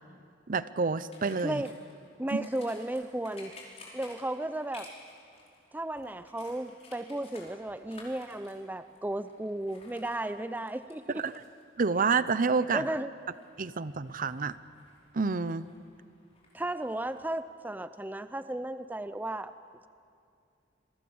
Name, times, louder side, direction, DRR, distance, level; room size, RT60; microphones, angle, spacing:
voice 1, 0.5-1.6 2.3-2.4 11.1-11.3 11.8-12.8 13.6-14.5 15.1-15.6, right 4 dB, 45° right, 15 dB, 0.7 m, -28 dB
sound 1, 1.1-17.2, left 2 dB, 35° left, 5.3 m, -55 dB
voice 2, 1.4-1.7 2.2-3.5 3.9-4.9 5.7-11.2 12.7-13.1 16.5-19.5, right 1 dB, 10° right, 12 dB, 0.5 m, -34 dB
28.0 x 23.5 x 7.2 m, 2.4 s
head